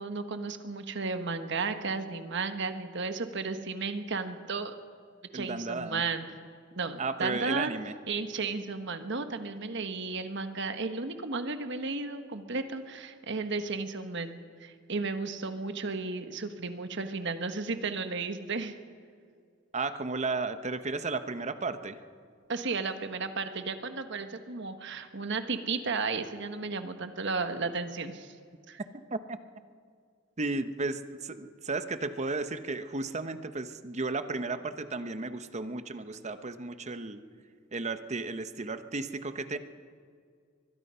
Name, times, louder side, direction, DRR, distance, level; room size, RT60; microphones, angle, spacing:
voice 1, 0.0-4.7 5.3-6.3 6.8-7.7 8.1-18.7 22.5-28.3 28.7-28.8, right 4 dB, 60° right, 8 dB, 1.4 m, -34 dB
voice 2, 5.3-6.0 7.0-7.9 19.7-22.0 29.1-29.4 30.4-37.2 37.7-39.6, right 3 dB, 35° right, 10 dB, 0.9 m, -34 dB
23.0 x 22.0 x 5.6 m, 2.1 s
head